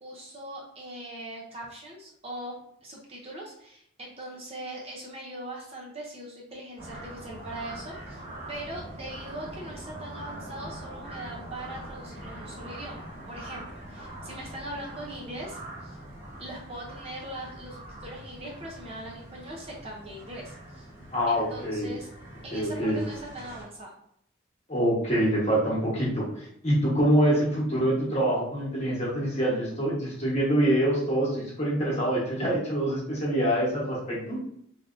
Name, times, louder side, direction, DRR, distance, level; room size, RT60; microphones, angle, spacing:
voice 1, 0.0-8.2 8.5-16.0 16.4-20.9 21.3-22.1 22.4-23.9, right 1 dB, 30° right, -2 dB, 0.6 m, -41 dB
sound 1, 6.8-23.6, right 1 dB, 45° right, 1.2 m, -43 dB
voice 2, 21.1-21.9 22.5-23.0 24.7-34.4, right 1 dB, 35° left, -5 dB, 1.1 m, -25 dB
3.3 x 2.6 x 2.5 m, 0.70 s
head